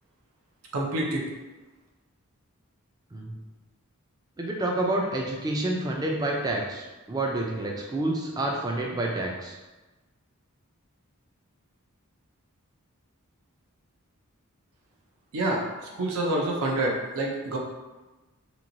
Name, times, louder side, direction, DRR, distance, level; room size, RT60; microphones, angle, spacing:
voice 1, 0.7-1.2 15.3-17.6, right 1 dB, 75° right, -1 dB, 0.6 m, -27 dB
voice 2, 4.4-9.5, right 1 dB, 15° right, -1 dB, 0.3 m, -28 dB
3.0 x 2.7 x 2.6 m, 1.1 s
head